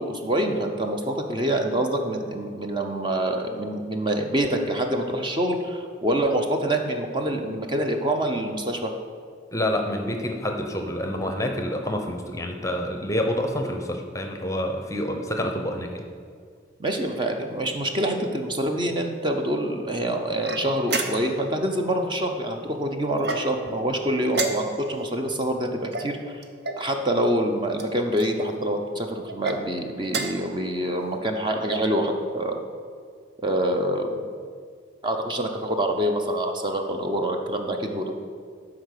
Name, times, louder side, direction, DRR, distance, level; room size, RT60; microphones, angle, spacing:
voice 1, 0.0-8.9 16.8-26.4 26.8-32.6 33.4-34.1 35.0-38.1, right 1 dB, 25° right, 3 dB, 0.7 m, -26 dB
voice 2, 9.5-15.9, left 1 dB, 15° left, 4 dB, 0.7 m, -27 dB
sound 1, 20.4-21.5 23.2-23.8 24.3-25.0 25.9-26.9 27.7-28.3 29.3-29.6 30.0-30.5, right 3 dB, 55° right, 0.8 m, -30 dB
12.0 x 4.9 x 6.6 m, 2.1 s
head